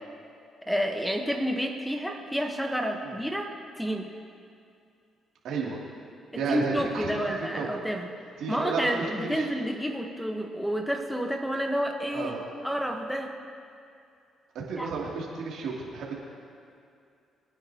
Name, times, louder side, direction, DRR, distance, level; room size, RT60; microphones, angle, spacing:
voice 1, 0.7-3.5 3.8-4.1 6.5-8.1 8.5-12.3 12.6-13.3 14.8-14.9, equal, ahead, 3 dB, 1.2 m, -29 dB
voice 2, 5.4-5.8 6.3-7.2 7.5-7.7 8.4-9.5 12.1-12.4 14.7-16.2, right 4 dB, 80° right, -4 dB, 2.8 m, -32 dB
23.5 x 9.9 x 2.9 m, 2.5 s
cardioid pair, 90°, 0 cm